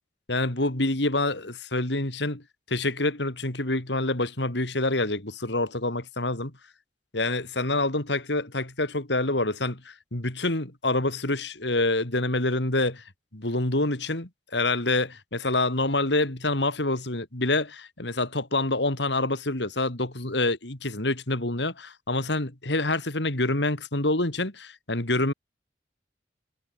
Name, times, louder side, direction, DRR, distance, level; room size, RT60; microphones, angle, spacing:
voice 1, 0.3-2.4 2.7-6.5 7.1-13.0 13.3-25.3, left 2 dB, 80° left, 3.6 m, -27 dB
head